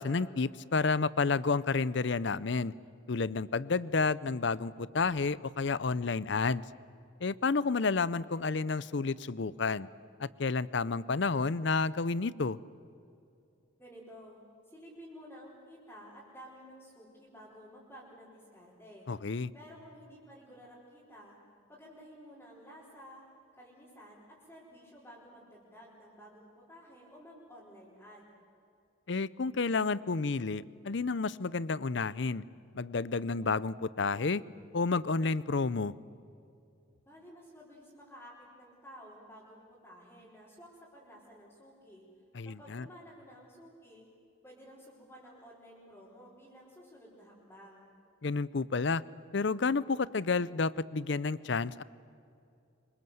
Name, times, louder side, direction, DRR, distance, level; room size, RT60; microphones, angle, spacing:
voice 1, 0.0-2.7 3.1-6.6 7.2-9.9 10.2-12.6 19.1-19.5 29.1-32.4 32.7-34.4 34.7-35.9 42.3-42.9 48.2-49.0 49.3-51.8, left 4 dB, 60° left, 19 dB, 0.6 m, -30 dB
voice 2, 13.8-14.4 14.7-19.1 19.5-21.4 21.7-23.2 23.5-28.3 37.0-42.0 42.4-44.0 44.4-47.9, equal, 10° left, -9 dB, 4.8 m, -53 dB
26.0 x 24.5 x 7.8 m, 2.5 s
head